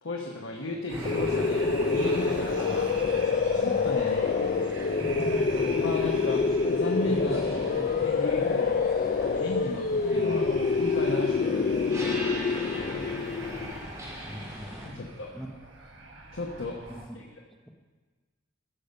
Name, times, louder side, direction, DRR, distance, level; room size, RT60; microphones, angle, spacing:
voice 1, 0.0-3.2 3.5-4.3 5.7-7.4 8.0-8.9 9.2-11.9 14.8-15.3 16.3-16.8 17.1-17.2, left 2 dB, 90° left, -1 dB, 1.2 m, -35 dB
sound 1, 0.9-14.9, equal, 20° right, 2.5 m, -40 dB
sound 2, 0.9-17.1, right 2 dB, 70° right, 1.4 m, -43 dB
sound 3, 1.1-13.9, left 4 dB, 45° left, 0.4 m, -26 dB
voice 2, 14.2-15.5 16.9-17.2, equal, ahead, 2 dB, 0.8 m, -43 dB
13.5 x 6.8 x 5.3 m, 1.4 s
head